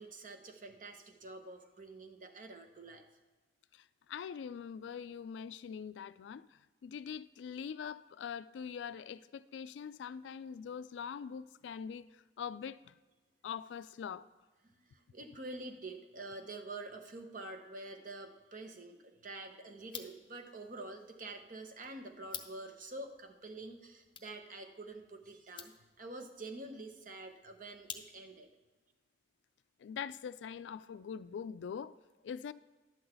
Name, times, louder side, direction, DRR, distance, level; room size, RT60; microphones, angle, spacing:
voice 1, 0.0-3.0 14.6-28.5, right 2 dB, 45° right, 0.9 m, -47 dB
voice 2, 3.7-6.4 6.8-12.1 12.4-12.9 13.4-14.2 29.8-31.9 32.2-32.5, left 7 dB, 85° left, 0.3 m, -43 dB
sound 1, 19.8-28.5, left 8 dB, 25° left, 0.6 m, -52 dB
11.5 x 3.9 x 7.8 m
head